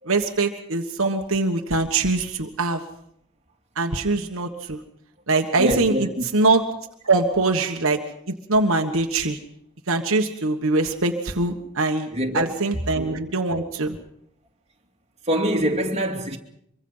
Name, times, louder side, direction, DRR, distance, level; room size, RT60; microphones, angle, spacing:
voice 1, 0.1-2.8 3.8-4.8 5.3-6.6 7.0-8.0 8.5-9.4 9.9-12.1 12.3-14.0, right 3 dB, 65° right, 1.5 m, -22 dB
voice 2, 5.6-6.2 12.1-12.5 15.3-16.4, equal, 30° right, 2.6 m, -24 dB
24.0 x 24.0 x 5.6 m
head